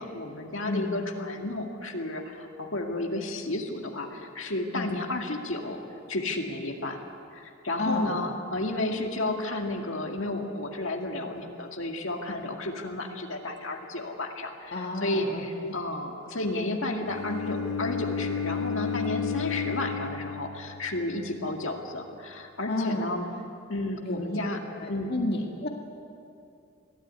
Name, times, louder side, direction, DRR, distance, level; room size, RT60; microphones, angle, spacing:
voice 1, 0.0-5.8 6.1-7.0 7.3-23.3 23.7-24.6 24.9-25.2, left 2 dB, 70° left, 2 dB, 2.2 m, -32 dB
voice 2, 7.8-8.2 14.7-15.7 22.7-23.1 24.0-24.4 24.8-25.7, left 2 dB, 50° left, 0 dB, 1.9 m, -31 dB
Bowed string instrument, 17.0-21.1, left 6 dB, 85° left, 0.8 m, -32 dB
22.5 x 15.5 x 9.5 m, 2.6 s
head